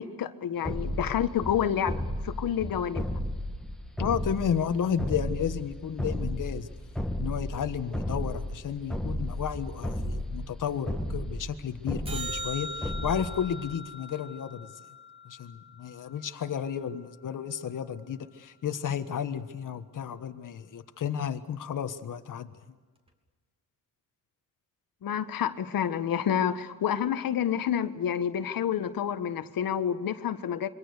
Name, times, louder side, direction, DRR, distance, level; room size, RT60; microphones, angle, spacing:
voice 1, 0.0-3.1 25.0-30.7, left 9 dB, 80° left, 11 dB, 1.5 m, -29 dB
sound 1, 0.6-13.7, left 1 dB, ahead, 1.9 m, -34 dB
voice 2, 4.0-6.7 7.2-14.7 15.2-22.5, left 8 dB, 65° left, 9 dB, 1.5 m, -32 dB
Reception Bell With Strange Resonance, 12.1-16.5 23.1-23.2, equal, 15° right, 3.3 m, -41 dB
27.5 x 23.5 x 6.7 m, 1.3 s
cardioid pair, 115°, 34 cm